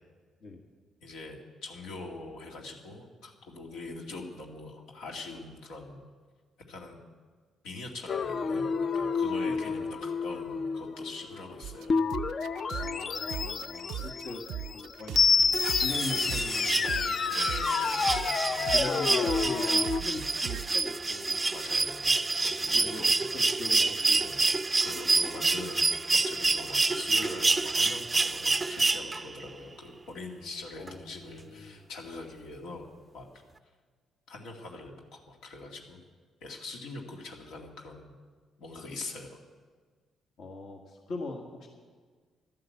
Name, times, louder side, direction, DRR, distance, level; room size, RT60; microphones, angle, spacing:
voice 1, 1.0-6.0 6.7-7.0 7.6-11.9 17.3-18.8 21.5-23.2 24.1-24.5 24.8-26.0 26.2-32.9 33.1-33.3 34.3-36.0 36.4-38.2 38.6-39.4, left 2 dB, 90° left, 0 dB, 2.3 m, -43 dB
sound 1, 8.1-20.0, left 5 dB, 45° left, 0.5 m, -29 dB
voice 2, 9.4-9.8 12.8-14.4 14.7-15.2 15.8-17.4 18.7-21.5 22.7-24.3 30.8-31.8 40.4-41.7, left 2 dB, 65° left, 1 dB, 1.7 m, -41 dB
sound 2, 11.6-14.2 14.5-20.7, right 12 dB, 85° right, 0.4 m, -39 dB
sound 3, 15.5-29.4 30.9-31.0, right 3 dB, 20° right, 0.4 m, -28 dB
12.5 x 11.5 x 8.4 m, 1.5 s
cardioid pair, 90°, 0 cm